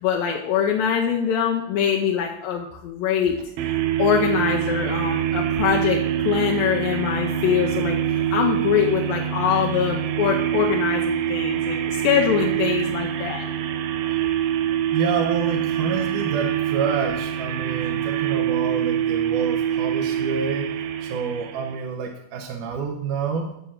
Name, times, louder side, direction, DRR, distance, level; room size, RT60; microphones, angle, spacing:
voice 1, 0.0-3.4 4.0-13.4, left 8 dB, 80° left, 1 dB, 2.5 m, -23 dB
sound 1, 3.6-21.9, right 10 dB, 90° right, 2.7 m, -25 dB
voice 2, 14.9-20.7 21.0-23.5, right 5 dB, 70° right, 1 dB, 2.3 m, -28 dB
10.0 x 6.2 x 7.2 m, 0.79 s
omnidirectional pair, 4.3 m